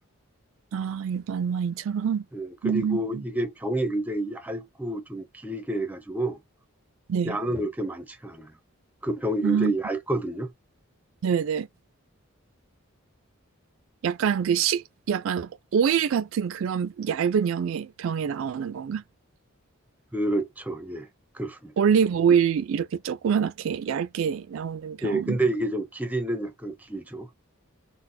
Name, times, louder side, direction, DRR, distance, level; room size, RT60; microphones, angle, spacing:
voice 1, 0.7-2.2 2.6-3.2 7.1-7.4 9.4-9.7 11.2-11.7 14.0-19.0 21.8-25.4, right 7 dB, 70° right, 0.3 m, -25 dB
voice 2, 2.3-6.4 7.2-8.5 9.0-10.5 20.1-21.1 21.3-21.7 25.0-27.3, right 1 dB, 10° right, 0.5 m, -29 dB
4.0 x 2.1 x 2.6 m
head